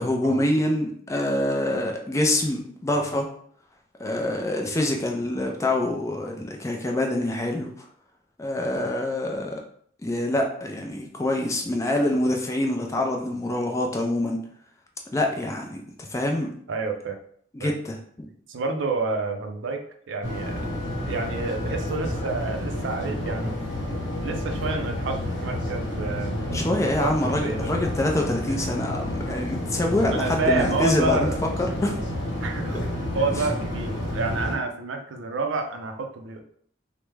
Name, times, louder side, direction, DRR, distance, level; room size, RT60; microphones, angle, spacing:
voice 1, 0.0-3.3 4.0-7.7 8.4-9.6 10.0-14.4 15.1-16.5 17.5-18.3 26.5-31.3 31.6-32.2, left 1 dB, 15° left, 1 dB, 0.4 m, -26 dB
voice 2, 16.7-17.2 17.6-17.7 18.5-19.8 20.1-20.7 21.0-23.5 24.2-26.6 27.0-27.7 30.1-31.4 32.4-32.8 33.1-36.4, right 3 dB, 75° right, 4 dB, 0.5 m, -29 dB
sound 1, 20.2-34.5, left 1 dB, 70° left, 0.9 m, -30 dB
3.3 x 2.0 x 3.2 m, 0.62 s
head